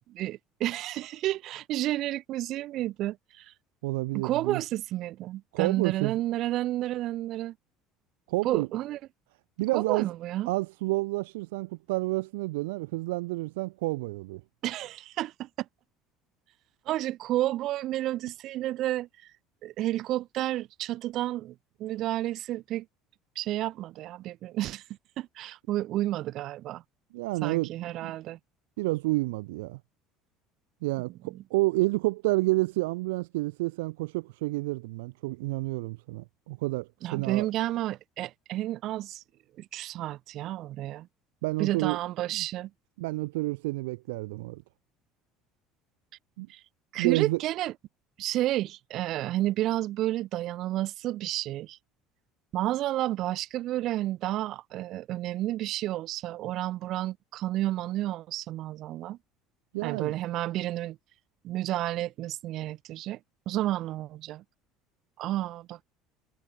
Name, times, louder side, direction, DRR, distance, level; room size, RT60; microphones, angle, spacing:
voice 1, 0.1-3.5 4.1-7.5 8.4-9.0 9.7-10.5 14.6-15.5 16.9-19.1 19.6-21.5 21.8-22.8 23.3-24.8 25.2-26.8 27.4-28.4 31.3-31.4 37.0-39.2 39.6-41.1 41.6-42.7 46.5-46.6 46.9-47.7 48.2-51.8 52.5-59.2 59.8-61.0 61.4-63.2 63.5-64.4 65.2-65.8, right 14 dB, 60° right, 1.3 m, -31 dB
voice 2, 3.8-4.6 5.5-6.1 8.3-8.7 9.6-10.1 10.5-14.4 27.1-27.7 28.0-28.2 28.8-29.8 30.8-37.5 41.4-42.0 42.3-42.5 43.0-44.6 46.4-46.5 47.0-47.4 59.7-60.1, right 22 dB, 85° right, 0.6 m, -29 dB
supercardioid pair, 90°, 0 cm